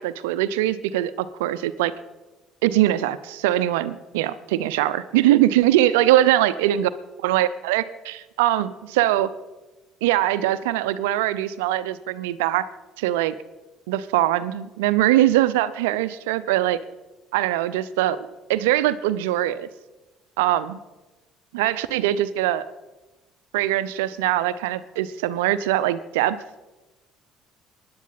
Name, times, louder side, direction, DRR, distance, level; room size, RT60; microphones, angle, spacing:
voice 1, 0.0-1.9 2.6-6.9 7.2-9.3 10.0-12.7 13.0-13.3 13.9-16.8 17.3-18.2 18.5-19.7 20.4-20.8 21.5-22.7 23.5-26.4, right 14 dB, 75° right, 14 dB, 0.7 m, -22 dB
24.0 x 10.5 x 4.1 m, 1.1 s
hypercardioid pair, 55°, 0 cm